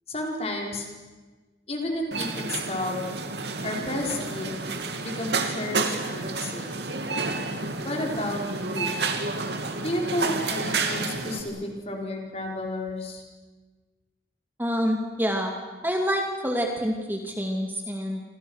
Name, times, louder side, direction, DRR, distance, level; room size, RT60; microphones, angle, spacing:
voice 1, 0.1-0.9 1.7-3.0 3.6-4.5 5.0-6.7 7.8-8.9 9.8-13.2, left 1 dB, 35° left, 1 dB, 4.8 m, -31 dB
sound 1, 2.1-11.4, right 3 dB, 70° right, 2.7 m, -30 dB
voice 2, 14.6-15.5 15.8-18.2, equal, 10° right, 2 dB, 2.2 m, -27 dB
29.5 x 25.5 x 6.4 m, 1.3 s
head